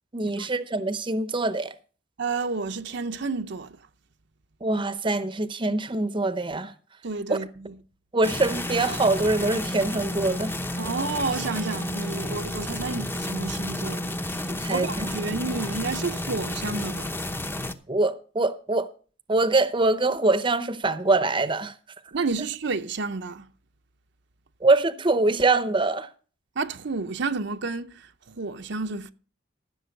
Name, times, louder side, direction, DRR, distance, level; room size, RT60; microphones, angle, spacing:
voice 1, 0.1-1.7 4.6-6.7 7.3-7.4 8.1-10.5 14.5-15.1 17.9-18.9 19.3-21.7 24.6-26.1, right 2 dB, 25° right, 0.7 m, -24 dB
voice 2, 2.2-3.8 7.0-7.7 10.8-17.1 22.1-23.5 26.6-29.1, right 3 dB, 60° right, 0.7 m, -31 dB
sound 1, 8.2-17.7, left 1 dB, 10° left, 0.8 m, -31 dB
15.0 x 7.3 x 5.1 m
head